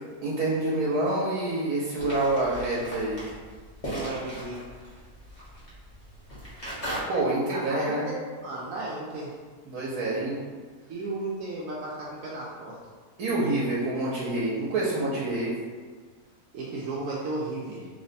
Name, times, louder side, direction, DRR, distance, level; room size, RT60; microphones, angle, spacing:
voice 1, 0.2-3.2 7.1-8.0 9.7-10.4 13.2-15.5, right 2 dB, 90° right, -5 dB, 1.2 m, -27 dB
sound 1, 2.0-7.0, right 1 dB, 25° left, 1.0 m, -38 dB
voice 2, 3.9-4.6 7.5-9.3 10.9-12.8 16.5-17.9, right 2 dB, 70° right, -6 dB, 1.0 m, -34 dB
3.2 x 2.1 x 3.9 m, 1.5 s
omnidirectional pair, 1.6 m